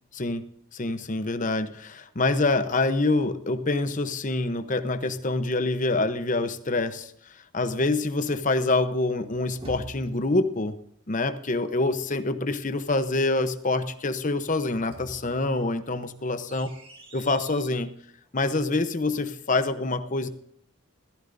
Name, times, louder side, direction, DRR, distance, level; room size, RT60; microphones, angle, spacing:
voice 1, 0.1-0.5 0.7-10.8 11.1-16.7 17.1-17.9 18.3-20.3, left 2 dB, 35° left, 10 dB, 0.9 m, -26 dB
sound 1, 9.0-10.5 14.5-17.8, right 1 dB, 25° right, 2.3 m, -46 dB
15.0 x 14.5 x 2.7 m, 0.68 s
head